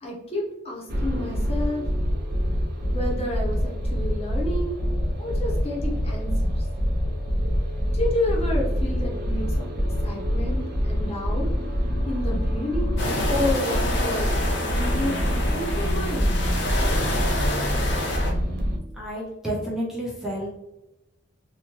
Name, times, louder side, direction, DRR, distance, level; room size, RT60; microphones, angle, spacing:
voice 1, 0.0-1.8 2.9-4.8 5.2-6.7 7.9-9.7 10.0-11.5 12.0-14.3 14.7-16.3, left 1 dB, 35° left, -2 dB, 0.8 m, -30 dB
sound 1, 0.9-18.8, equal, 60° right, 0.6 m, -25 dB
sound 2, 13.0-18.3, left 1 dB, 70° left, 0.7 m, -28 dB
voice 2, 18.9-20.5, right 1 dB, 5° right, -5 dB, 0.5 m, -30 dB
2.8 x 2.2 x 3.0 m, 0.91 s
head